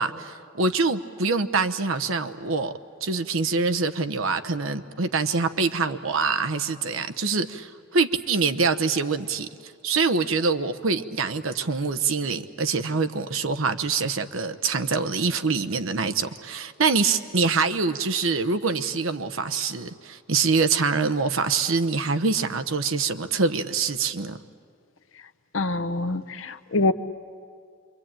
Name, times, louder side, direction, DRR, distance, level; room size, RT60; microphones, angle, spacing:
voice 1, 0.0-2.7 3.0-9.5 9.8-24.4, right 4 dB, 85° right, 9 dB, 1.0 m, -25 dB
voice 2, 25.5-26.9, left 2 dB, 75° left, 10 dB, 0.9 m, -25 dB
27.5 x 23.0 x 8.9 m, 2.1 s
head